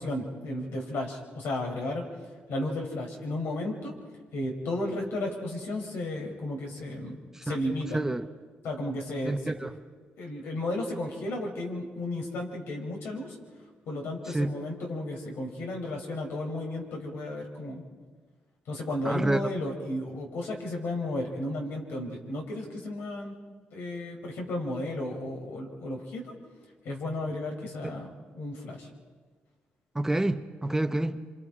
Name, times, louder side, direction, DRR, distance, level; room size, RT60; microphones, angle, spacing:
voice 1, 0.0-2.0 2.5-3.9 4.3-8.0 8.6-9.5 10.2-13.4 13.9-17.8 18.7-23.4 23.7-26.3 26.8-28.1 28.3-28.9, left 1 dB, 85° left, 1 dB, 4.1 m, -33 dB
voice 2, 7.9-8.3 9.3-9.7 14.3-14.5 19.0-19.4 29.9-31.2, right 1 dB, 10° right, 8 dB, 0.8 m, -28 dB
26.5 x 26.0 x 4.9 m, 1.5 s
cardioid pair, 95°, 4 cm